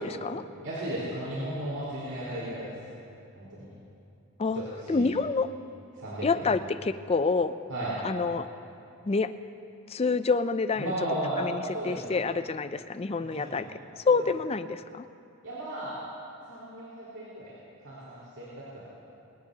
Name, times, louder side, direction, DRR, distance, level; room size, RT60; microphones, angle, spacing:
voice 1, 0.6-2.8 3.4-3.6 4.5-5.0 5.9-6.4 7.7-7.9 10.8-11.4 11.7-12.2 13.2-13.6 14.1-14.2 15.4-16.0 16.5-17.5 17.8-18.8, right 1 dB, 85° right, -9 dB, 4.3 m, -35 dB
voice 2, 4.9-5.5 6.2-7.6 8.0-8.5 9.0-9.3 9.9-10.9 11.4-13.7 14.0-15.1, left 4 dB, 25° left, 12 dB, 0.4 m, -27 dB
24.0 x 18.5 x 2.8 m, 2.6 s
head